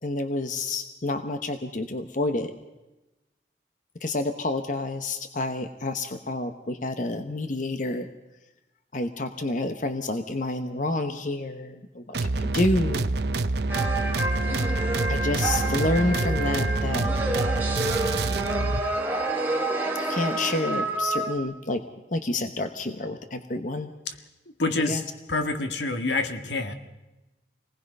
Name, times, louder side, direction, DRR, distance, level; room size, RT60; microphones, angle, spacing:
voice 1, 0.0-2.5 4.0-8.1 8.9-13.1 15.1-17.4 20.0-21.8 22.1-23.9 24.9-25.0, left 2 dB, 45° left, 8 dB, 1.1 m, -29 dB
sound 1, 12.1-18.8, right 2 dB, 65° right, 0.8 m, -27 dB
sound 2, 13.7-21.4, right 2 dB, 10° right, 2.6 m, -29 dB
voice 2, 24.6-25.0 25.3-26.7, left 3 dB, 80° left, 7 dB, 1.9 m, -27 dB
27.0 x 19.5 x 5.5 m, 1.0 s
head